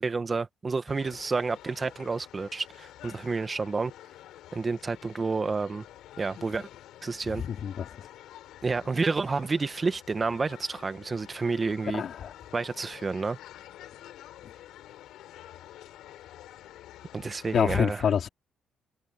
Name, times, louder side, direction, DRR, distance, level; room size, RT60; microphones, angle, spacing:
voice 1, 0.0-3.9 4.5-5.8 6.2-6.7 7.0-7.4 8.6-12.0 12.5-13.4 17.1-18.1, right 4 dB, 30° right, 1.3 m, -30 dB
sound 1, 0.9-17.6, left 13 dB, 85° left, 7.3 m, -49 dB
voice 2, 7.3-7.9 11.9-12.3 17.5-18.3, left 8 dB, 60° left, 3.0 m, -27 dB
cardioid pair, 90°, 0 cm